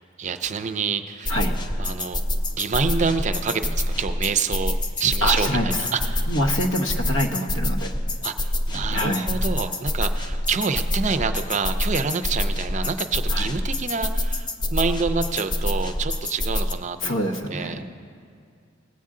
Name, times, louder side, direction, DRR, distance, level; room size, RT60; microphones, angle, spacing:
voice 1, 0.2-1.3 1.8-2.2 2.5-6.3 8.2-17.1 17.5-17.9, right 5 dB, 35° right, 9 dB, 0.4 m, -27 dB
sound 1, 1.3-16.7, left 1 dB, 20° left, 0.5 m, -26 dB
voice 2, 5.2-5.9 6.3-7.9 8.7-9.3 13.3-13.5 17.0-17.9, left 1 dB, 80° left, 3 dB, 1.0 m, -26 dB
19.0 x 8.4 x 3.7 m, 2.2 s
head